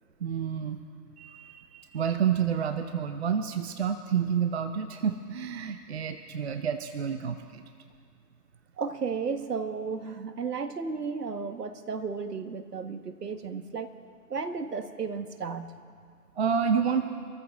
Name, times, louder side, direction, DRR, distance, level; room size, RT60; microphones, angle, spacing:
voice 1, 0.2-0.8 1.2-7.6 16.4-17.1, right 7 dB, 40° right, 8 dB, 0.7 m, -29 dB
voice 2, 8.8-13.9 14.3-15.7, right 5 dB, 70° right, 9 dB, 1.4 m, -34 dB
26.5 x 14.0 x 3.5 m, 2.1 s
figure-of-eight pair, 145°, 49 cm